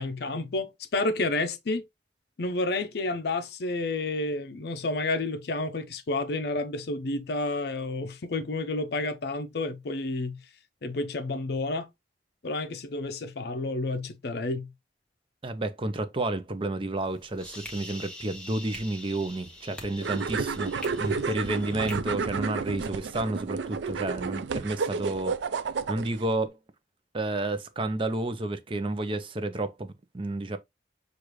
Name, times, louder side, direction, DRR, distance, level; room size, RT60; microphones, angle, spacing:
voice 1, 0.0-1.8 2.4-10.4 10.8-11.9 12.4-14.7 21.1-21.2, left 2 dB, 60° left, 0.5 m, -30 dB
voice 2, 15.4-25.4 25.9-26.6 27.1-30.6, right 2 dB, 30° right, 0.6 m, -31 dB
sound 1, 17.0-22.0, left 1 dB, 5° left, 0.9 m, -44 dB
sound 2, 20.0-26.3, right 5 dB, 80° right, 0.4 m, -31 dB
6.4 x 2.5 x 3.0 m
head